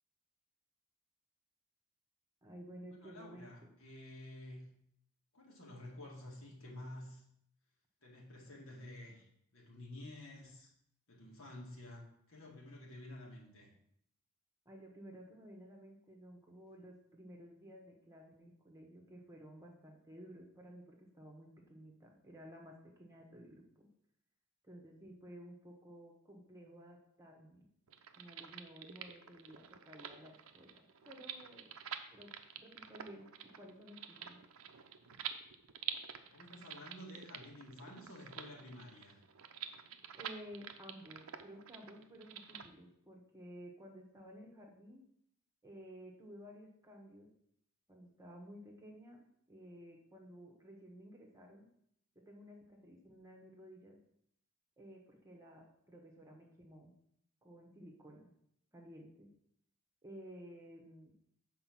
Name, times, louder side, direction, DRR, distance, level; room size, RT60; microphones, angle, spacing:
voice 1, 2.4-3.5 14.6-23.9 24.6-27.7 28.2-31.7 32.1-33.3 33.5-34.4 40.1-45.0 45.6-47.3 47.9-51.7 52.3-54.0 54.8-56.9 57.4-58.3 58.7-59.3 60.0-61.1, equal, 15° right, 0 dB, 1.2 m, -54 dB
voice 2, 2.9-4.6 5.3-7.2 8.0-9.3 9.5-10.7 11.1-13.7 36.3-39.2, left 1 dB, 65° left, -2 dB, 2.1 m, -51 dB
sound 1, 27.9-42.7, right 9 dB, 65° right, 0.7 m, -48 dB
7.8 x 4.5 x 5.9 m, 0.72 s
head